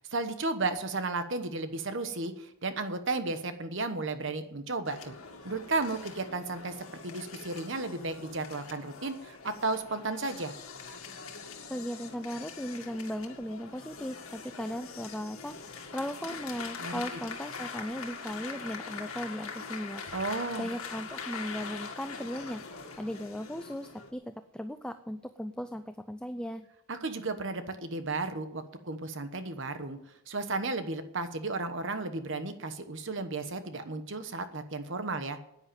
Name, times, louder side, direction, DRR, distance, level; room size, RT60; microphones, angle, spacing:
voice 1, 0.0-5.1 5.4-6.7 7.0-10.5 16.8-17.0 20.1-20.7 26.9-30.0 30.3-35.5, right 3 dB, 60° right, 9 dB, 1.2 m, -34 dB
sound 1, 4.9-24.1, left 5 dB, 80° left, 2.0 m, -43 dB
voice 2, 11.7-20.1 20.6-22.6 23.0-26.7, equal, 5° left, 9 dB, 0.5 m, -37 dB
10.5 x 9.6 x 9.0 m, 0.79 s
head